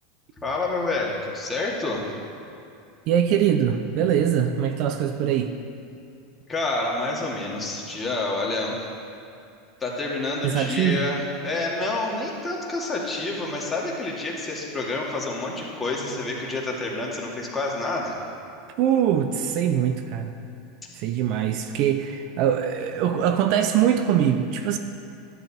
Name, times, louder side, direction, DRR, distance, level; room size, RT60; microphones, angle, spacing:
voice 1, 0.4-2.1 6.5-8.8 9.8-18.2, left 2 dB, 20° left, -3 dB, 2.4 m, -28 dB
voice 2, 3.1-5.5 10.4-11.0 18.8-20.4 20.9-24.8, right 9 dB, 55° right, 7 dB, 0.7 m, -22 dB
12.0 x 9.6 x 4.4 m, 2.5 s
hypercardioid pair, 95°, 0 cm